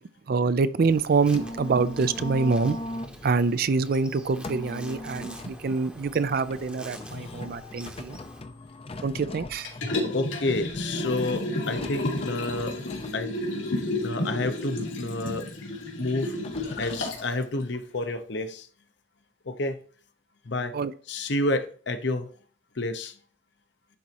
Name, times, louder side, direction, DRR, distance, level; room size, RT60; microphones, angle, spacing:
voice 1, 0.3-2.8 3.2-8.2 9.0-9.7 20.7-20.9, right 4 dB, 50° right, 0.4 m, -25 dB
Insect, 0.8-8.4, equal, 5° right, 0.9 m, -46 dB
sound 1, 1.2-17.3, left 1 dB, 30° left, 0.6 m, -41 dB
Liquid, 9.6-17.3 17.7-17.8, left 1 dB, 80° left, 2.3 m, -31 dB
voice 2, 10.1-12.8 13.1-13.4 14.0-15.5 16.0-16.4 16.8-18.7 19.4-19.8 20.4-20.8 21.1-22.3 22.7-23.2, left 2 dB, 60° left, 0.9 m, -29 dB
11.0 x 4.1 x 2.9 m
head